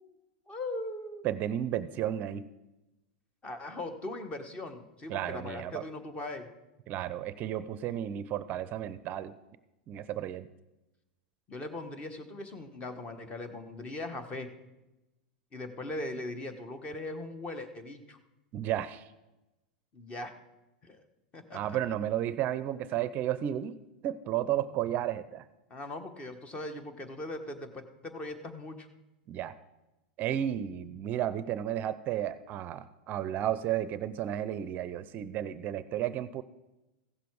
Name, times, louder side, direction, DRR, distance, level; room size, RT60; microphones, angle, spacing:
voice 1, 0.5-1.3 3.4-6.5 11.5-14.5 15.5-18.2 19.9-20.3 20.8-21.0 21.3-21.8 25.7-28.9, left 2 dB, 25° left, 9 dB, 1.3 m, -40 dB
voice 2, 1.2-2.5 5.1-5.8 6.9-9.3 9.9-10.5 18.5-19.1 21.5-23.8 24.0-25.4 29.3-29.5 30.2-36.4, right 11 dB, 40° right, 14 dB, 0.5 m, -33 dB
15.5 x 6.8 x 4.7 m, 1.0 s
hypercardioid pair, 115°, 5 cm